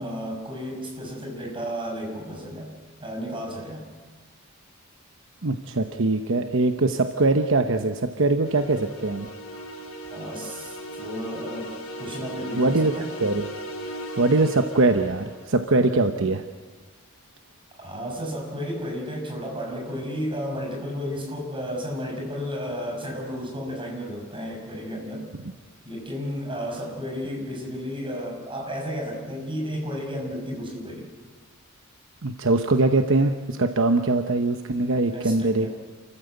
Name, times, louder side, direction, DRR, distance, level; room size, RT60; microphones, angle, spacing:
voice 1, 0.0-2.7 3.0-3.9 10.1-11.7 12.0-13.1 17.8-25.3 25.8-31.1 35.1-35.7, equal, 25° right, 0 dB, 6.4 m, -33 dB
voice 2, 5.4-9.3 12.5-12.9 13.2-13.5 14.2-16.4 32.2-35.7, right 2 dB, 65° right, 6 dB, 1.0 m, -22 dB
sound 1, 8.4-15.4, right 1 dB, 70° left, 3.1 m, -37 dB
29.0 x 14.5 x 8.1 m, 1.4 s
head